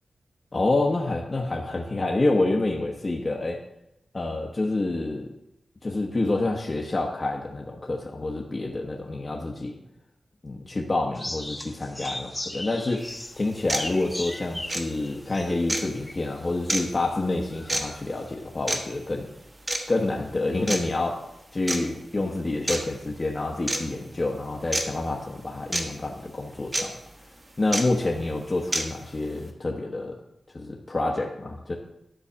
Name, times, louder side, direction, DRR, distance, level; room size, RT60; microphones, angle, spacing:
voice 1, 0.5-3.6 4.1-5.3 5.8-9.8 10.4-13.1 13.4-19.3 19.9-21.3 21.5-26.9 27.6-30.2 30.5-31.7, left 2 dB, 35° left, -1 dB, 1.0 m, -28 dB
sound 1, 11.2-16.4 16.9-17.0 17.5-18.0, left 1 dB, 10° left, 1.1 m, -37 dB
sound 2, 13.0-13.1 13.7-13.9 14.7-14.8 15.7-15.8 16.7-16.8 17.7-17.8 18.7-18.8 19.7-19.8 20.7-20.8 21.7-21.8 22.7-22.8 23.7-23.8 24.7-24.8 25.7-25.8 26.7-26.8 27.7-27.8 28.7-28.8, right 1 dB, 25° right, 1.3 m, -26 dB
11.5 x 4.0 x 6.8 m, 0.84 s
wide cardioid pair, 105°, 0 cm